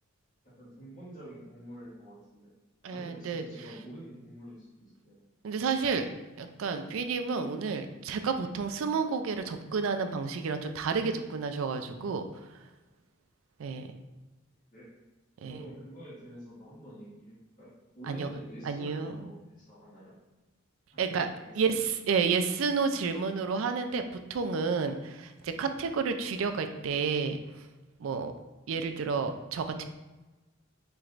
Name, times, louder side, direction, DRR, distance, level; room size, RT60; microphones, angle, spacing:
voice 1, 0.6-2.5 2.9-5.2 14.7-14.9 15.5-17.7 17.9-20.2 20.9-21.9, right 1 dB, 40° left, -10 dB, 1.4 m, -47 dB
voice 2, 2.8-3.4 5.4-6.1 6.4-12.2 13.6-13.9 15.4-15.6 18.1-18.3 18.6-19.2 21.0-21.3 21.6-24.0 24.3-27.4 28.0-28.3 28.7-29.8, right 5 dB, 70° right, 8 dB, 0.4 m, -30 dB
4.5 x 3.0 x 2.5 m, 1.1 s
head